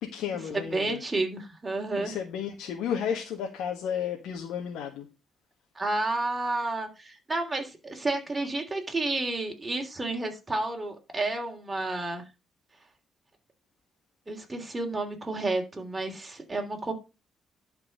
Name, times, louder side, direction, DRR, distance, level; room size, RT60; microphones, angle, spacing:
voice 1, 0.0-1.0 2.0-5.1, left 8 dB, 90° left, 1.4 m, -32 dB
voice 2, 0.5-2.1 5.7-12.2 14.3-16.9, right 2 dB, 20° right, 3.1 m, -31 dB
11.0 x 4.5 x 5.2 m
cardioid pair, 90°, 0 cm